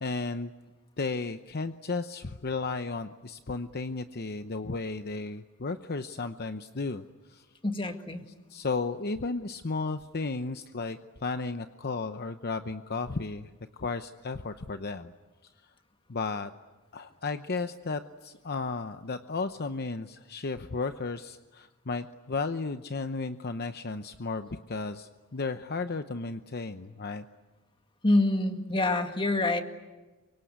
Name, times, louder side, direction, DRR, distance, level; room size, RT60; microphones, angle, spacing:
voice 1, 0.0-0.5 1.0-7.0 7.3-7.4 8.5-13.5 13.8-15.1 16.1-16.5 16.9-27.2, left 3 dB, 50° left, 9 dB, 0.8 m, -34 dB
voice 2, 7.6-8.2 28.0-29.6, left 2 dB, 25° left, 6 dB, 1.9 m, -26 dB
28.5 x 24.5 x 8.2 m, 1.2 s
head